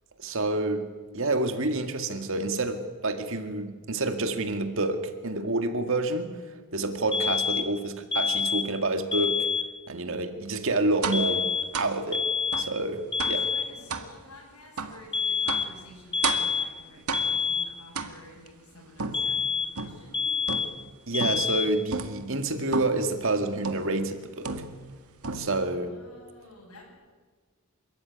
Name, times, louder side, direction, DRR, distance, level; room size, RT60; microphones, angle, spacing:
voice 1, 0.2-6.3 6.7-9.5 9.9-12.3 12.6-13.5 21.1-24.6 25.3-25.9, right 2 dB, 60° right, 7 dB, 2.1 m, -28 dB
sound 1, 7.1-7.8 8.1-8.8 9.1-9.8 11.1-11.8 12.1-12.8 13.1-13.8 15.1-15.8 16.1-16.8 17.1-17.8 19.1-19.8 20.1-20.8 21.1-21.8, left 6 dB, 25° left, 0.9 m, -28 dB
sound 2, 11.0-11.3 11.7-12.0 12.5-12.7 13.2-13.5 13.9-14.1 14.8-15.0 15.5-15.8 16.2-16.6 17.1-17.5 17.9-18.5 19.0-20.1 20.5-20.9 21.2-21.6 21.9-22.2 22.7-23.1 23.6-24.0 24.4-24.9 25.2-25.7, right 4 dB, 90° right, 2.0 m, -33 dB
voice 2, 13.2-20.4 25.1-25.3 25.5-26.9, left 2 dB, 85° left, -6 dB, 7.3 m, -51 dB
28.5 x 14.0 x 9.6 m, 1.4 s
head